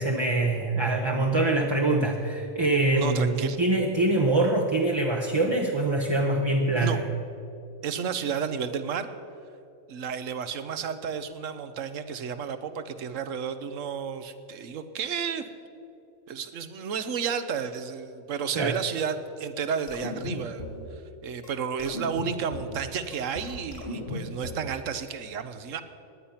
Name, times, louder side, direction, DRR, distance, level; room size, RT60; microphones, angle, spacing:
voice 1, 0.0-7.0 18.6-18.8, right 2 dB, 25° right, 1 dB, 0.8 m, -24 dB
voice 2, 2.9-3.6 6.7-7.0 7.8-9.1 9.9-15.4 16.3-20.7 20.9-25.8, right 6 dB, 70° right, 11 dB, 1.2 m, -32 dB
sound 1, 19.9-20.9 21.4-21.5 21.8-22.8 23.1-24.7, left 2 dB, 60° left, 2.3 m, -36 dB
17.5 x 10.5 x 5.7 m, 2.8 s
omnidirectional pair, 1.4 m